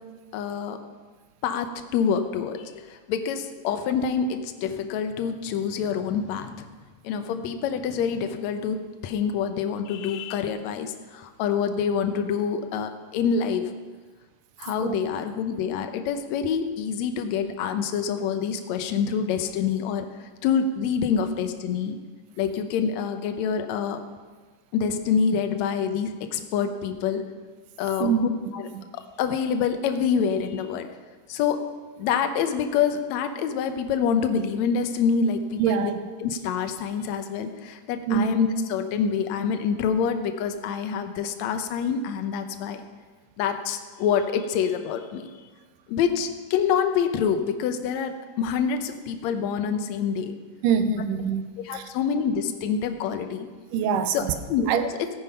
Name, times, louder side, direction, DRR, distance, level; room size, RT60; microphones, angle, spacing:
voice 1, 0.3-0.8 1.4-6.7 7.0-8.8 9.0-13.7 14.6-22.0 22.4-24.0 24.7-27.3 27.8-28.7 28.9-30.9 31.3-31.6 32.0-35.9 36.2-42.8 43.4-45.3 45.9-50.4 51.6-53.5 54.1-55.1, left 7 dB, 70° left, 7 dB, 1.8 m, -26 dB
voice 2, 35.6-35.9 38.1-38.3 50.6-51.5 51.7-51.8 53.7-54.3 54.7-54.8, right 7 dB, 75° right, 9 dB, 2.2 m, -23 dB
15.0 x 9.2 x 5.6 m, 1.4 s
omnidirectional pair, 4.0 m